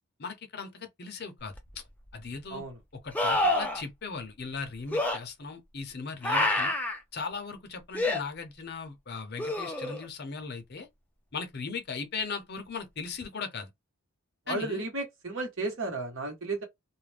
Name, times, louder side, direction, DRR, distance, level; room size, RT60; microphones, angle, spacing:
voice 1, 0.2-1.8 2.1-2.6 2.9-6.7 7.1-10.9 11.3-13.7 14.5-14.8, left 5 dB, 50° left, 0.6 m, -38 dB
sound 1, 1.5-1.6 3.1-3.8 4.9-5.2 6.2-7.0 7.9-8.2 9.4-10.1 13.2-13.3, left 2 dB, 5° left, 0.4 m, -27 dB
voice 2, 14.5-16.6, right 2 dB, 65° right, 1.1 m, -33 dB
2.4 x 2.1 x 3.2 m
head